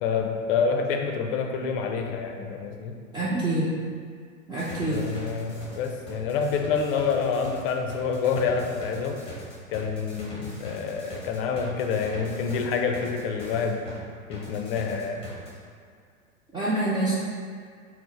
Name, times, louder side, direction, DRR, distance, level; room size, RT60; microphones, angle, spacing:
voice 1, 0.0-2.9 4.9-9.2 9.7-13.8 14.3-15.2, left 5 dB, 40° left, 3 dB, 0.5 m, -27 dB
voice 2, 3.1-3.7 4.5-5.1 16.5-17.1, right 2 dB, 10° right, -9 dB, 0.5 m, -26 dB
sound 1, 4.6-14.0 14.3-15.5, left 1 dB, 15° left, 1.1 m, -42 dB
4.3 x 2.1 x 4.2 m, 2.1 s
figure-of-eight pair, 95°, 41 cm